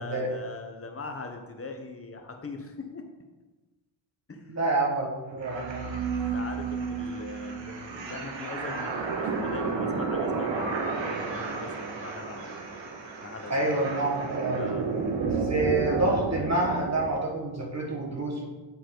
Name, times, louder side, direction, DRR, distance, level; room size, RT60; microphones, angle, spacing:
voice 1, 0.0-3.1 4.3-4.6 5.8-5.9 6.3-12.9 13.2-13.7 14.5-14.9, left 3 dB, 30° left, 5 dB, 1.2 m, -41 dB
voice 2, 4.5-5.9 13.5-14.6 15.2-18.4, right 2 dB, 35° right, -1 dB, 1.7 m, -28 dB
sound 1, 5.4-17.1, right 4 dB, 65° right, 1.3 m, -31 dB
8.6 x 4.3 x 3.9 m, 1.2 s
cardioid pair, 75°, 49 cm